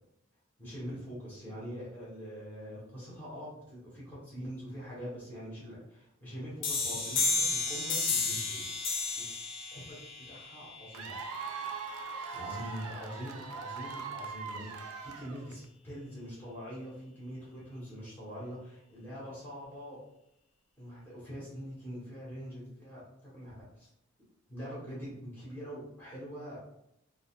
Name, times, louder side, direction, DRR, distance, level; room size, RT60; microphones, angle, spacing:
voice 1, 0.6-9.2 9.7-11.1 12.3-20.0 20.8-23.9 24.5-26.6, equal, 10° left, -8 dB, 1.3 m, -44 dB
sound 1, 6.6-12.0, left 3 dB, 55° left, 0.5 m, -33 dB
Cheering / Applause / Crowd, 10.9-15.7, right 5 dB, 80° right, 0.3 m, -41 dB
3.9 x 2.0 x 2.4 m, 0.81 s
head